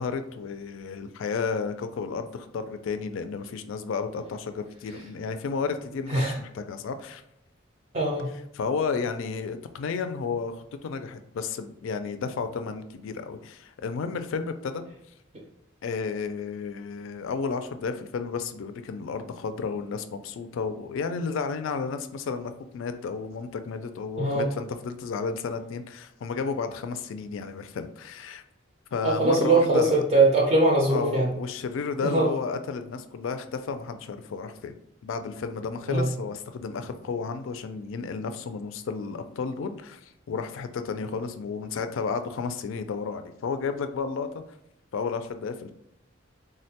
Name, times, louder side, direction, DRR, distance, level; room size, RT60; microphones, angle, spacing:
voice 1, 0.0-7.2 8.5-14.8 15.8-28.4 28.9-30.0 30.9-34.8 35.0-44.3 44.9-45.7, left 5 dB, 75° left, 9 dB, 0.3 m, -32 dB
voice 2, 7.9-8.3 24.2-24.5 29.0-31.3 32.0-32.3 35.9-36.1, right 2 dB, 35° right, -1 dB, 0.4 m, -21 dB
3.7 x 2.1 x 2.7 m, 0.82 s
head